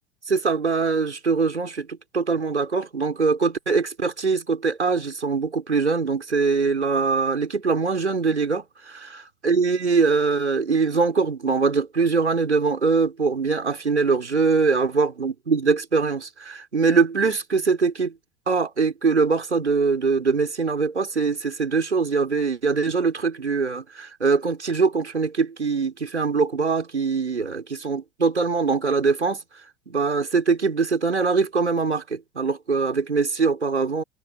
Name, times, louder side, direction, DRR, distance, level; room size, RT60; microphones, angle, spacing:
voice 1, 0.3-9.1 9.4-18.1 18.5-29.4 29.9-34.0, right 4 dB, 85° right, 5.4 m, -22 dB
figure-of-eight pair, 75°, 33 cm